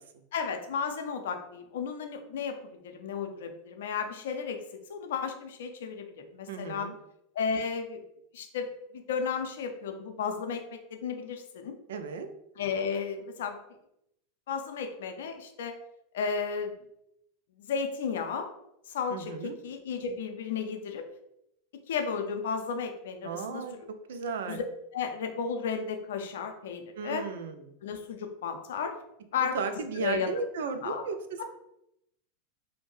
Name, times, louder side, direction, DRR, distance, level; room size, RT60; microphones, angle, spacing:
voice 1, 0.3-2.5 2.8-4.6 4.9-6.9 7.4-8.0 8.3-10.6 10.9-11.8 12.6-13.6 14.5-15.7 16.1-16.7 17.7-18.5 18.9-21.1 21.9-23.6 24.5-24.6 24.9-27.2 27.8-28.9 29.3-30.3 30.8-31.0 31.4-31.5, left 6 dB, 75° left, 5 dB, 0.4 m, -33 dB
voice 2, 6.5-6.9 11.9-12.3 19.1-19.6 23.2-23.8 24.1-24.6 26.9-27.7 29.4-31.2, right 5 dB, 75° right, 8 dB, 0.3 m, -34 dB
2.5 x 2.1 x 3.1 m, 0.79 s
hypercardioid pair, 95°, 0 cm